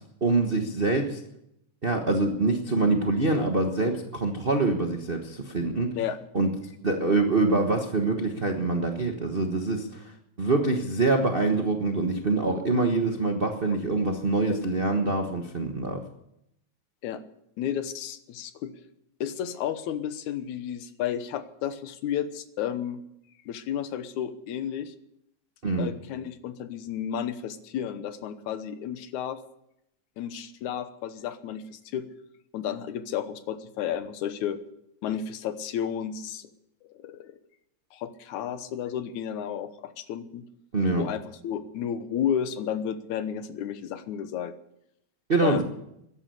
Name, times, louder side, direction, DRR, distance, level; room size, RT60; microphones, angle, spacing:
voice 1, 0.2-1.2 1.8-5.9 6.3-6.5 6.8-10.1 10.4-16.0 25.6-25.9 40.7-41.0 45.3-45.6, right 3 dB, 55° right, 3 dB, 0.6 m, -25 dB
voice 2, 17.6-18.7 19.2-23.0 23.5-24.9 25.8-29.4 30.2-32.0 32.5-34.6 35.0-36.5 36.9-37.4 37.9-40.4 41.0-44.5 45.4-45.6, left 9 dB, 85° left, 11 dB, 2.4 m, -32 dB
14.5 x 11.0 x 8.5 m, 0.80 s
omnidirectional pair, 3.3 m